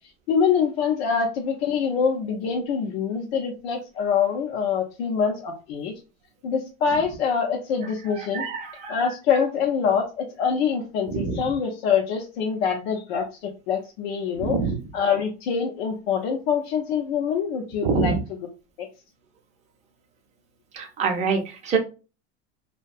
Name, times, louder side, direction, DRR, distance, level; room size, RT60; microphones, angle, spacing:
voice 1, 0.3-5.9 6.4-8.5 8.9-14.6 14.9-18.1 18.8-18.9, left 6 dB, 90° left, 1 dB, 0.6 m, -25 dB
voice 2, 8.1-9.1 11.1-11.5 14.4-14.7 17.8-18.2 20.7-21.8, right 5 dB, 25° right, 4 dB, 0.5 m, -26 dB
2.6 x 2.2 x 2.4 m, 0.32 s
supercardioid pair, 155°, 30 cm